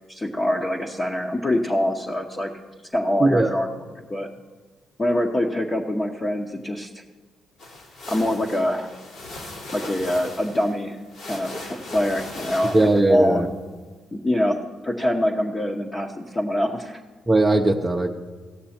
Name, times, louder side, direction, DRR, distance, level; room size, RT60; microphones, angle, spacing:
voice 1, 0.1-2.5 2.9-3.7 4.0-4.3 5.0-7.0 8.1-8.9 9.7-11.0 11.3-11.5 11.9-13.5 14.1-14.6 14.8-17.0, left 1 dB, 25° left, -1 dB, 1.0 m, -24 dB
voice 2, 3.2-3.5 12.7-13.5 17.3-18.1, right 2 dB, 15° right, 1 dB, 0.7 m, -18 dB
sound 1, 7.6-13.2, left 2 dB, 80° left, 2.7 m, -38 dB
17.0 x 6.7 x 4.3 m, 1.4 s
cardioid pair, 90°, 0 cm